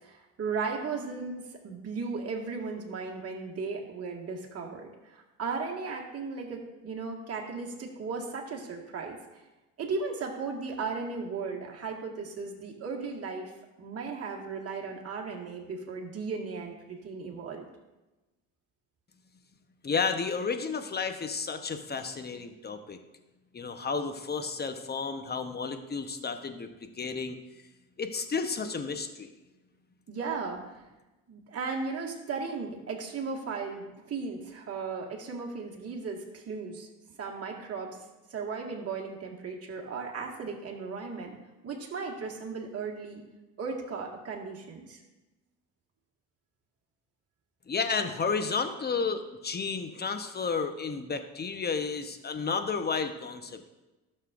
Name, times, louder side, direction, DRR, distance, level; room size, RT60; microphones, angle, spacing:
voice 1, 0.0-9.2 9.8-13.5 13.8-17.6 30.1-30.8 31.3-36.9 37.2-38.0 38.3-41.4 41.6-43.2 43.6-45.0, right 4 dB, 40° right, 0 dB, 1.9 m, -36 dB
voice 2, 19.8-23.0 23.5-26.7 27.0-27.4 28.0-29.3 47.7-53.7, left 5 dB, 25° left, 8 dB, 1.0 m, -32 dB
12.5 x 6.6 x 2.6 m, 1.1 s
supercardioid pair, 70°, 38 cm